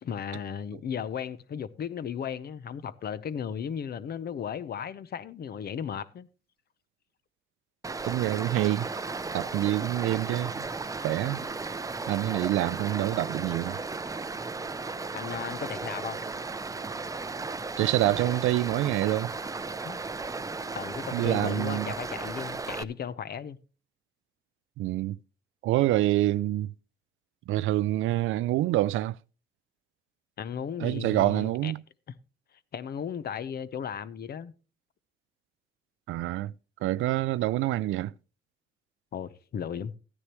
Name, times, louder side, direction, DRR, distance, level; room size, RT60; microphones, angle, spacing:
voice 1, 0.0-6.3 15.1-16.2 19.8-20.0 20.7-23.6 30.4-31.7 32.7-34.5 39.1-39.9, left 8 dB, 50° left, 0.7 m, -35 dB
Stream, 7.8-22.8, right 3 dB, 15° right, 0.5 m, -35 dB
voice 2, 8.0-8.9 9.3-10.7 11.0-11.5 12.1-13.8 17.8-19.3 21.1-21.9 24.8-25.2 25.6-26.7 27.5-29.2 30.8-31.8 36.1-36.5 36.8-38.1, right 15 dB, 80° right, 0.4 m, -26 dB
14.0 x 9.8 x 3.0 m
cardioid pair, 90°, 20 cm